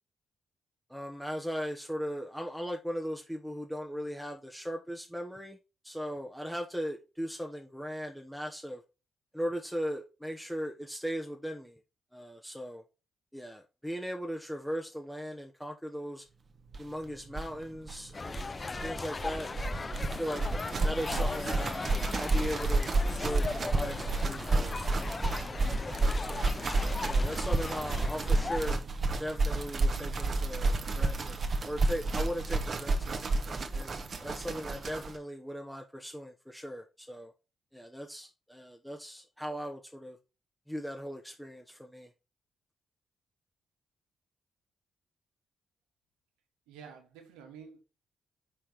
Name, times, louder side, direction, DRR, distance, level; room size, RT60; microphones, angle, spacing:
voice 1, 0.9-5.6 5.8-8.8 9.3-11.8 12.1-12.8 13.3-16.2 16.8-19.5 19.7-25.2 25.5-26.5 27.0-28.8 29.2-31.4 31.6-33.2 33.7-37.3 37.7-40.2 40.7-42.1, equal, ahead, 1.0 m, -38 dB
sound 1, 16.7-16.8 17.0-17.1 17.3-35.2, right 2 dB, 50° right, 1.1 m, -30 dB
sound 2, 18.1-28.8, left 3 dB, 40° left, 0.4 m, -38 dB
voice 2, 46.7-47.8, right 6 dB, 85° right, 1.2 m, -49 dB
5.4 x 4.4 x 5.0 m
hypercardioid pair, 45°, 0 cm